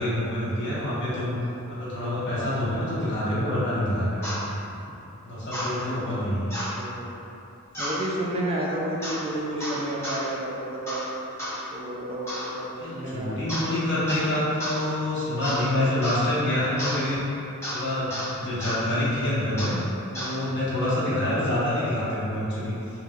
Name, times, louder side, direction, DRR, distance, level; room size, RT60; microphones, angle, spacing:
voice 1, 0.0-1.4 1.7-4.3 5.2-6.5 12.8-17.2 17.7-19.8 20.1-23.0, left 1 dB, 50° left, -10 dB, 0.9 m, -27 dB
sound 1, 4.2-4.4 5.5-5.7 6.5-6.8 7.7-8.0 9.0-9.2 9.6-10.2 10.9-11.1 11.4-11.6 12.3-12.5 13.5-13.7 14.1-14.3 14.6-14.8 15.4-15.7 16.0-16.3 16.8-17.0 17.6-17.8 18.1-18.3 18.6-18.8 19.6-19.8 20.1-20.3, equal, 10° left, 0.8 m, -32 dB
voice 2, 6.8-7.1 7.8-11.0 11.7-13.4, right 1 dB, 25° right, -5 dB, 0.3 m, -31 dB
3.1 x 2.7 x 2.4 m, 2.8 s
head